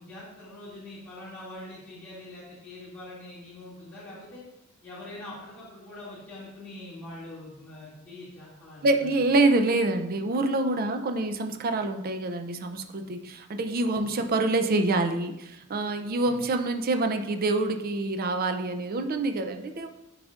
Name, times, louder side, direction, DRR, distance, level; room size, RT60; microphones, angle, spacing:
voice 1, 0.0-4.4 4.8-9.2 14.0-14.1 16.2-16.4, left 1 dB, 10° left, -13 dB, 2.3 m, -43 dB
voice 2, 8.8-19.9, right 2 dB, 45° right, 7 dB, 0.5 m, -26 dB
9.7 x 4.9 x 2.5 m, 0.92 s
head